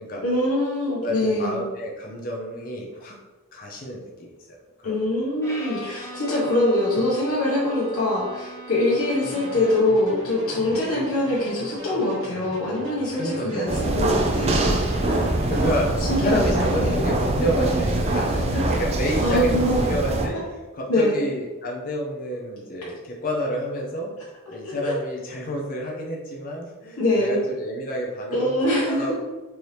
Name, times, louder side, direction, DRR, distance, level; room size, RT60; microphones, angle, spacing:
voice 1, 0.2-1.6 4.8-15.2 16.1-17.1 18.4-18.6 19.2-19.8 20.9-21.2 24.6-24.9 27.0-27.4 28.3-29.1, left 1 dB, 85° left, -7 dB, 1.2 m, -24 dB
voice 2, 0.9-3.2 3.5-5.1 10.7-10.8 13.2-13.8 15.0-24.1 24.5-29.1, equal, 40° left, -1 dB, 0.6 m, -29 dB
Bowed string instrument, 5.4-10.1, right 1 dB, 15° left, 0.9 m, -40 dB
sound 1, 8.9-15.7, equal, 60° right, 1.1 m, -40 dB
sound 2, 13.7-20.3, right 2 dB, 30° right, 0.4 m, -23 dB
4.6 x 2.8 x 3.2 m, 1.3 s
head